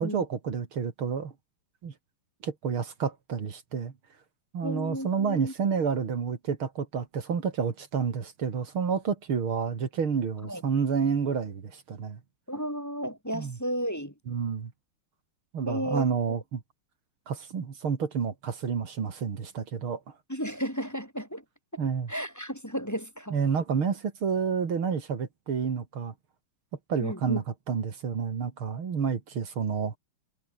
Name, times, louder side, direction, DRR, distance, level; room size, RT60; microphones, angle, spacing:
voice 1, 0.0-1.3 1.8-1.9 2.4-3.9 4.5-12.2 13.3-13.6 14.3-14.7 15.5-16.6 17.3-20.0 21.8-22.1 23.3-26.1 26.9-30.0, right 6 dB, 70° right, 3.3 m, -29 dB
voice 2, 4.6-5.5 10.4-10.6 12.5-14.1 15.6-16.4 20.3-21.4 22.1-23.4 27.0-27.4, equal, 5° left, 4.1 m, -33 dB
omnidirectional pair, 2.4 m